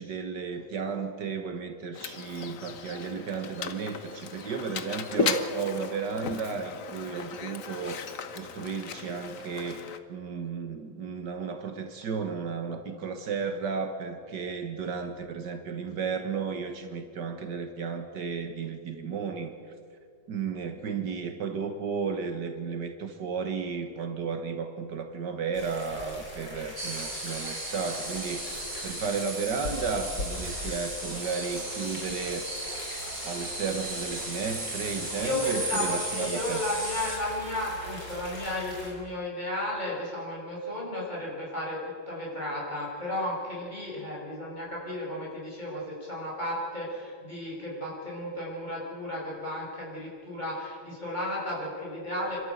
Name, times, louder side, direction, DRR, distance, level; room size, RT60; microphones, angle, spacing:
voice 1, 0.0-19.5 20.3-32.5 33.2-36.6, right 5 dB, 70° right, 6 dB, 1.9 m, -33 dB
Mechanisms, 1.9-10.0, left 6 dB, 50° left, 1.3 m, -36 dB
sound 1, 25.5-38.9, left 1 dB, 70° left, 5.9 m, -41 dB
sound 2, 26.8-37.2, right 1 dB, 20° right, 3.3 m, -36 dB
voice 2, 35.2-52.4, left 1 dB, 25° left, -5 dB, 6.7 m, -34 dB
28.0 x 13.0 x 8.4 m, 2.2 s
omnidirectional pair, 2.0 m